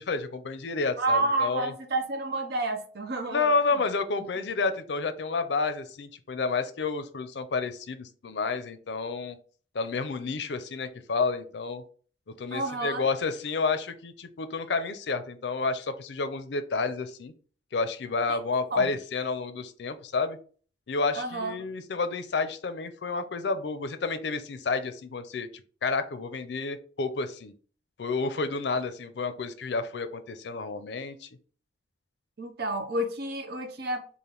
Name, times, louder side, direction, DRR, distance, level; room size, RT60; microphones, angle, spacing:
voice 1, 0.0-1.7 3.3-9.4 9.7-11.8 12.4-17.3 17.7-20.4 20.9-25.5 25.8-27.5 28.0-31.3, left 4 dB, 70° left, 11 dB, 0.5 m, -30 dB
voice 2, 1.0-3.8 12.5-13.1 18.3-18.4 18.7-18.9 21.2-21.6 32.4-34.1, right 2 dB, 60° right, 6 dB, 0.6 m, -30 dB
3.4 x 2.5 x 3.8 m, 0.42 s
head